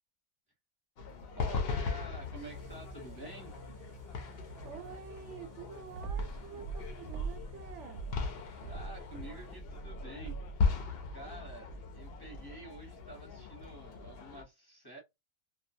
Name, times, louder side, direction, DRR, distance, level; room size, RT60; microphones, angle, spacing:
sound 1, 1.0-14.4, left 5 dB, 60° left, 0.6 m, -39 dB
voice 1, 1.4-3.5 8.6-10.4 11.1-15.0, right 1 dB, 20° left, 0.7 m, -49 dB
sound 2, 2.4-10.0, right 3 dB, 25° right, 0.4 m, -55 dB
voice 2, 4.6-8.0, right 7 dB, 65° right, 0.8 m, -48 dB
sound 3, 5.9-7.5 7.9-10.6, right 4 dB, 85° right, 1.1 m, -41 dB
2.3 x 2.3 x 2.6 m
omnidirectional pair, 1.5 m